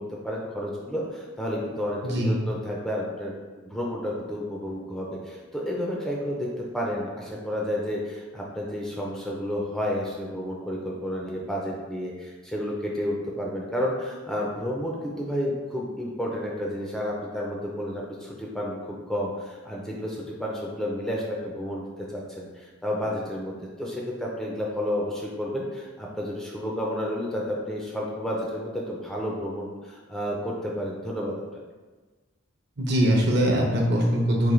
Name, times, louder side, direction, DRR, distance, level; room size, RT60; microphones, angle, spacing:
voice 1, 0.0-3.4 3.6-31.6, equal, ahead, -3 dB, 0.4 m, -31 dB
voice 2, 32.8-34.5, equal, 55° right, 0 dB, 0.7 m, -22 dB
3.7 x 2.7 x 3.1 m, 1.3 s
head